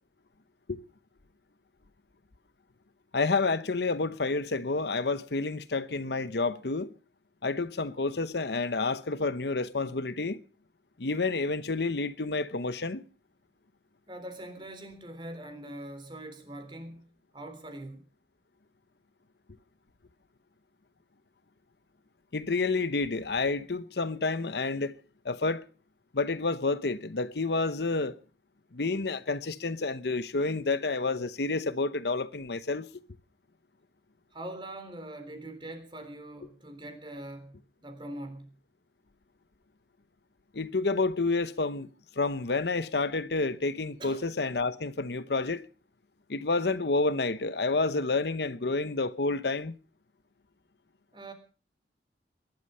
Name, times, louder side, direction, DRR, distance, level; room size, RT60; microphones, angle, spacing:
voice 1, 3.1-6.9 7.4-10.4 11.0-13.0 22.3-25.0 25.2-25.6 26.1-28.1 28.7-32.9 40.5-41.9 42.2-45.6 46.3-49.7, left 3 dB, 70° left, 0.9 m, -29 dB
voice 2, 14.1-17.0 17.3-18.0 34.3-37.6 37.8-38.5 44.0-44.3 51.1-51.3, right 1 dB, 25° right, 3.7 m, -42 dB
21.5 x 12.0 x 5.5 m
head